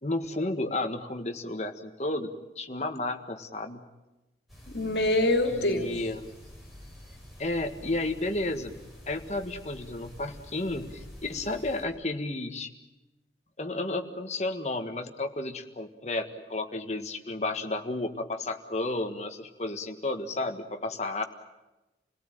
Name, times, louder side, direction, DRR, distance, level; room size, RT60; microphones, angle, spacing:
voice 1, 0.0-2.3 2.5-3.8 5.5-6.4 7.4-8.8 9.1-12.7 13.6-21.2, left 2 dB, 40° left, 6 dB, 1.7 m, -32 dB
sound 1, 4.5-11.8, equal, ahead, 6.7 m, -48 dB
voice 2, 4.7-6.0, left 1 dB, 70° left, 5 dB, 2.8 m, -25 dB
28.0 x 18.0 x 9.2 m, 1.1 s
head